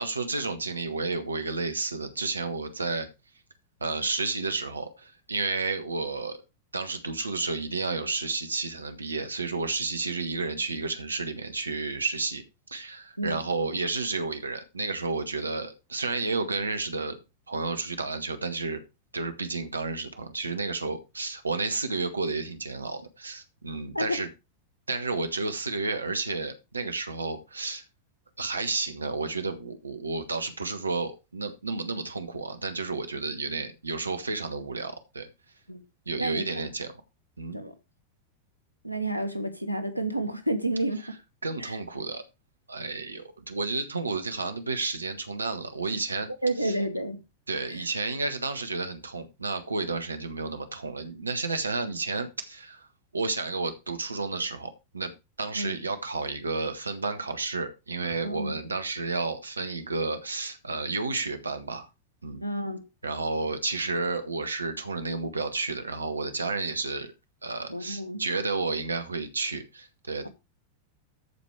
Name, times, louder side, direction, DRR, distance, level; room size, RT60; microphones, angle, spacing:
voice 1, 0.0-3.1 3.8-6.4 6.7-12.4 12.7-17.2 17.5-18.8 19.1-24.3 24.9-27.8 28.4-35.3 36.0-36.9 37.4-37.6 41.4-42.2 42.7-46.3 46.6-46.7 47.5-52.9 53.1-55.1 55.4-61.9 62.2-62.4 63.0-67.1 67.4-70.3, right 3 dB, 75° right, 1.5 m, -31 dB
voice 2, 36.2-36.7 37.5-37.7 38.8-41.2 41.6-41.8 46.4-47.2 47.7-47.8 55.5-55.8 58.2-58.6 62.4-62.8 67.7-68.2, right 1 dB, 90° left, 1.4 m, -30 dB
13.5 x 5.2 x 4.8 m
figure-of-eight pair, 90°, 0 cm